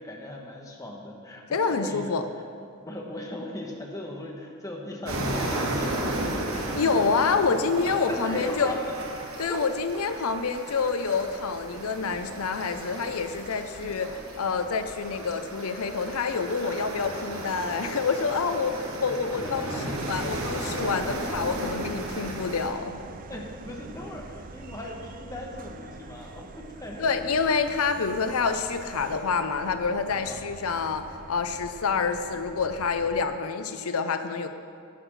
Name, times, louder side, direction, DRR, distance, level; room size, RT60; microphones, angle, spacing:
voice 1, 0.0-2.1 2.8-6.8 7.1-7.2 8.1-9.0 9.5-9.6 18.8-18.9 19.4-19.9 23.3-27.3 30.1-30.4, left 1 dB, 15° left, 0 dB, 1.4 m, -38 dB
voice 2, 1.5-2.2 6.8-8.7 9.4-19.7 20.1-23.0 27.0-34.5, left 5 dB, 85° left, 9 dB, 0.6 m, -27 dB
sound 1, 5.1-22.7, right 1 dB, 75° right, 1.7 m, -34 dB
sound 2, 20.0-33.3, right 3 dB, 40° right, 0.5 m, -43 dB
11.5 x 8.1 x 6.2 m, 2.4 s
head